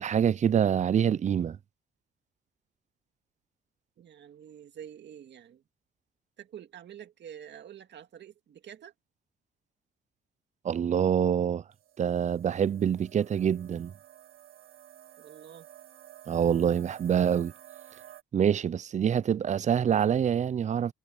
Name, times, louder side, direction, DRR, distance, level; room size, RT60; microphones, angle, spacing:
voice 1, 0.0-1.6 10.6-11.6 12.0-13.9 16.3-17.5 18.3-20.9, right 8 dB, 35° right, 0.5 m, -26 dB
voice 2, 4.0-5.6 6.4-8.9 15.2-15.7, right 9 dB, 60° right, 2.2 m, -47 dB
sound 1, 11.7-18.2, right 12 dB, 75° right, 4.4 m, -52 dB
cardioid pair, 90°, 20 cm